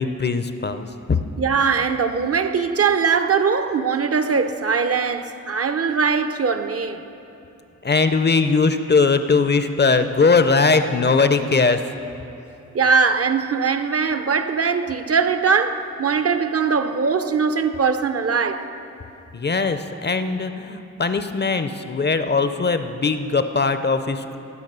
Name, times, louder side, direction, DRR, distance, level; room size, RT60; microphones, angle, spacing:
voice 1, 0.0-1.2 7.8-11.8 19.3-24.4, left 4 dB, 35° left, 0.5 m, -20 dB
voice 2, 1.4-7.0 12.7-18.7, right 5 dB, 50° right, 0.6 m, -21 dB
18.0 x 6.1 x 6.7 m
wide cardioid pair, 130°, 31 cm